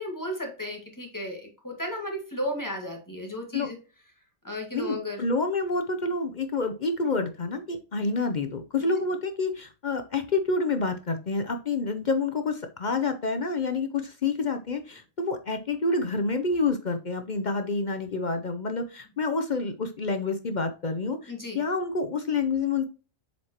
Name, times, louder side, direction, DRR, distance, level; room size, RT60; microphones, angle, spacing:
voice 1, 0.0-3.8 4.4-5.3 21.3-21.6, left 1 dB, 15° left, 1 dB, 1.7 m, -34 dB
voice 2, 4.7-22.8, left 3 dB, 50° left, 7 dB, 0.6 m, -28 dB
7.5 x 4.3 x 2.9 m, 0.34 s
omnidirectional pair, 1.4 m